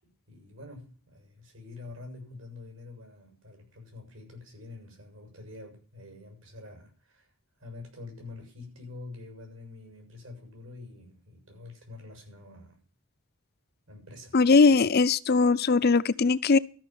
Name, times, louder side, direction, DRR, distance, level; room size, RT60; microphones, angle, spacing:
voice 1, 0.0-7.3 7.6-12.8 13.9-14.4, left 3 dB, 75° right, 6.9 m, -46 dB
voice 2, 14.3-16.6, left 4 dB, 50° left, 0.6 m, -20 dB
13.5 x 6.4 x 9.2 m
head